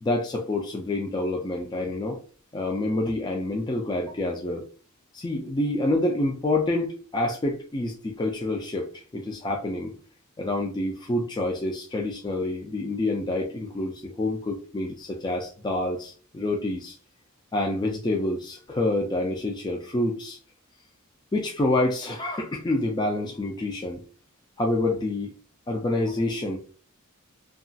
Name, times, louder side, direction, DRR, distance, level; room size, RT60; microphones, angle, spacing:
voice 1, 0.0-2.2 2.5-4.6 5.1-9.9 10.4-17.0 17.5-20.4 21.3-24.0 24.6-25.3 25.7-26.6, left 2 dB, 20° left, 1 dB, 0.3 m, -27 dB
2.8 x 2.3 x 2.6 m, 0.40 s
head